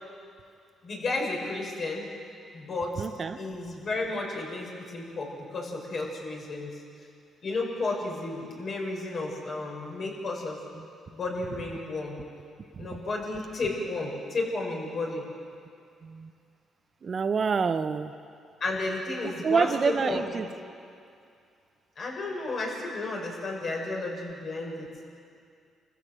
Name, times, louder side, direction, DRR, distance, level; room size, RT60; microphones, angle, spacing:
voice 1, 0.8-2.1 2.5-3.1 3.4-6.8 7.4-10.6 11.1-12.2 12.8-15.2 18.6-20.4 22.0-24.9, left 2 dB, 50° left, -1 dB, 6.5 m, -32 dB
voice 2, 3.0-3.4 10.8-10.9 12.7-13.0 16.0-16.3 17.0-18.1 19.2-20.5, right 5 dB, 45° right, 9 dB, 0.9 m, -27 dB
27.5 x 15.5 x 7.9 m, 2.4 s
cardioid pair, 90°, 0 cm